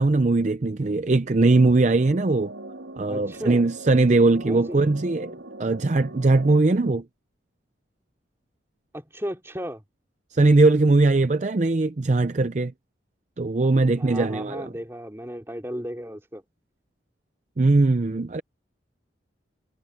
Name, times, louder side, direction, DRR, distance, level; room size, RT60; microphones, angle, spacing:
voice 1, 0.0-2.5 3.0-5.3 5.6-7.0 10.3-12.7 13.4-14.7 17.6-18.4, right 3 dB, 40° right, 0.5 m, -20 dB
sound 1, 1.4-6.6, right 2 dB, 85° right, 3.7 m, -41 dB
voice 2, 3.1-3.6 4.5-4.8 8.9-9.8 13.6-13.7 14.0-16.4, equal, 15° right, 3.5 m, -34 dB
head